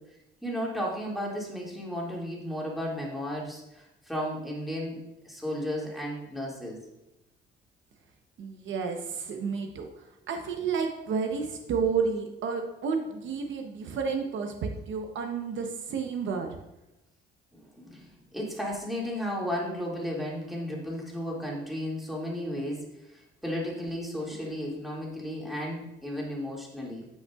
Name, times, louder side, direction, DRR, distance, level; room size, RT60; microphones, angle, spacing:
voice 1, 0.4-6.9 17.5-22.8 23.1-27.1, equal, ahead, -4 dB, 2.2 m, -34 dB
voice 2, 8.4-9.9 10.3-16.5, right 5 dB, 75° right, 4 dB, 0.9 m, -31 dB
9.1 x 5.4 x 2.4 m, 0.94 s
cardioid pair, 90°, 20 cm